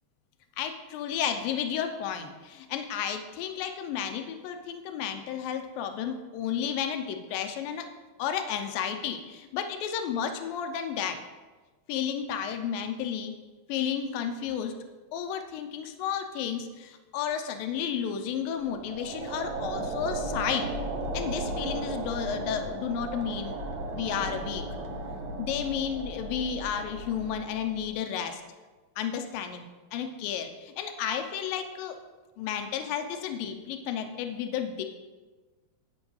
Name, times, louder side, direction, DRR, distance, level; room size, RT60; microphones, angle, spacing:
voice 1, 0.6-7.9 8.2-11.2 11.9-13.3 13.7-14.8 15.1-20.7 21.1-23.6 23.9-24.6 25.4-28.4 29.0-29.6 29.9-32.0 32.4-34.8, left 8 dB, 80° left, 6 dB, 2.3 m, -32 dB
sound 1, 18.6-27.9, right 2 dB, 80° right, 1.5 m, -35 dB
17.5 x 6.2 x 3.2 m, 1.3 s
omnidirectional pair, 4.4 m